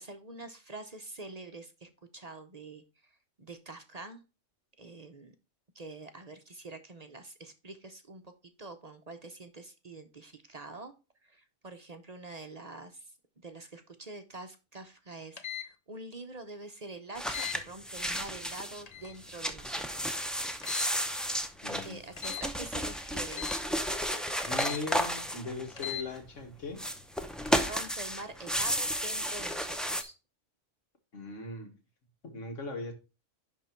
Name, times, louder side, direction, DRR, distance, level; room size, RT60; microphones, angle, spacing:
voice 1, 0.0-3.1 3.4-4.2 4.8-5.4 5.7-8.3 8.6-10.9 11.2-20.2 21.8-23.7 27.4-30.1, right 2 dB, 40° right, 0.7 m, -46 dB
sound 1, 15.4-15.7 17.3-17.6 18.9-19.2 20.6-21.0 22.2-22.5 23.3-23.6 24.5-24.8 25.7-26.1, left 10 dB, 40° left, 0.8 m, -38 dB
sound 2, 17.1-18.8 19.2-26.2 26.7-30.0, equal, ahead, 0.5 m, -33 dB
voice 2, 21.6-22.1 24.5-26.8 31.1-31.7 32.2-32.9, left 2 dB, 85° left, 2.0 m, -39 dB
11.0 x 3.7 x 4.4 m
omnidirectional pair, 1.2 m